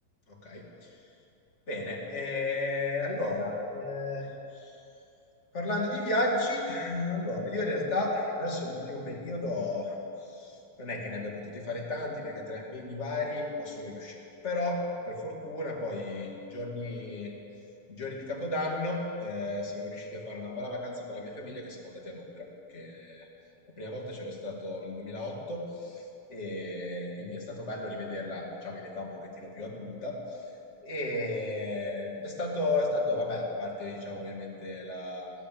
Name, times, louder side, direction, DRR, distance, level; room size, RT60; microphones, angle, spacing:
voice 1, 0.3-0.7 1.7-4.3 4.6-4.7 5.5-9.9 10.4-10.5 10.8-14.2 14.4-17.3 17.9-22.5 22.7-23.3 23.8-26.0 26.3-30.2 30.8-35.3, left 2 dB, 25° left, -2 dB, 1.7 m, -33 dB
16.5 x 10.5 x 7.6 m, 2.8 s
omnidirectional pair, 3.8 m